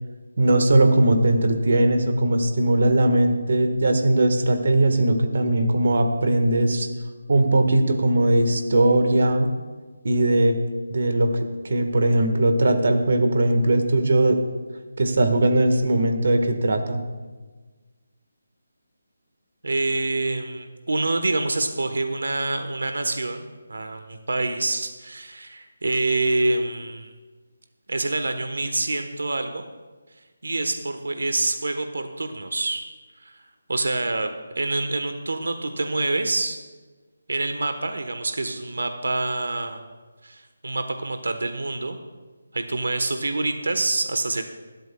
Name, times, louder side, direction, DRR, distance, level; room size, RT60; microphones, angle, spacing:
voice 1, 0.4-6.9 7.3-9.5 10.0-10.6 10.9-11.3 11.6-14.4 15.0-17.0, right 1 dB, 55° right, 6 dB, 1.5 m, -19 dB
voice 2, 19.6-27.1 27.9-29.6 30.4-32.9 33.2-33.4 33.7-34.3 34.5-36.6 37.3-39.8 40.2-42.0 42.5-44.4, right 2 dB, 90° right, 7 dB, 1.2 m, -26 dB
26.5 x 12.0 x 2.3 m, 1.3 s
hypercardioid pair, 175°, 0 cm